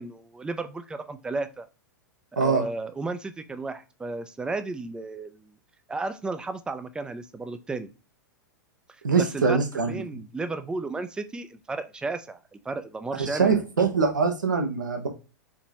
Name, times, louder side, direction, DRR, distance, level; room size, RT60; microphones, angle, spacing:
voice 1, 0.0-1.7 2.3-5.5 5.9-7.9 8.9-12.4 12.6-13.5, right 3 dB, 10° right, 10 dB, 0.4 m, -33 dB
voice 2, 9.0-10.0 13.1-15.1, right 5 dB, 80° right, 4 dB, 0.9 m, -23 dB
4.5 x 2.9 x 2.9 m, 0.32 s
figure-of-eight pair, 100°, 10 cm